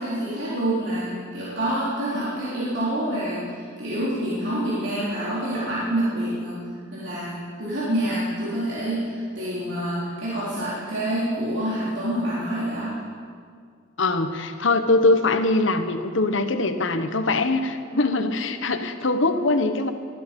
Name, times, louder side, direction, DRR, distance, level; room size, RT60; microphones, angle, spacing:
voice 1, 0.0-6.6 6.9-13.0, right 1 dB, 60° right, -9 dB, 3.8 m, -27 dB
voice 2, 14.0-19.9, left 2 dB, 65° left, 8 dB, 1.2 m, -22 dB
20.0 x 13.0 x 5.4 m, 2.1 s
head